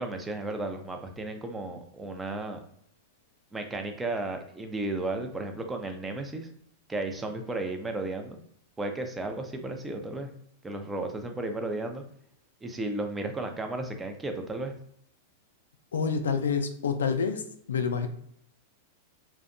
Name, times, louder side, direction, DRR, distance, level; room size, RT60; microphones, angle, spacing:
voice 1, 0.0-2.6 3.5-6.5 6.9-8.4 8.8-10.3 10.6-12.0 12.6-14.7, right 2 dB, 15° right, 5 dB, 0.4 m, -34 dB
voice 2, 15.9-17.4 17.7-18.1, left 6 dB, 85° left, 7 dB, 0.3 m, -27 dB
2.6 x 2.1 x 2.5 m, 0.68 s
hypercardioid pair, 115°, 0 cm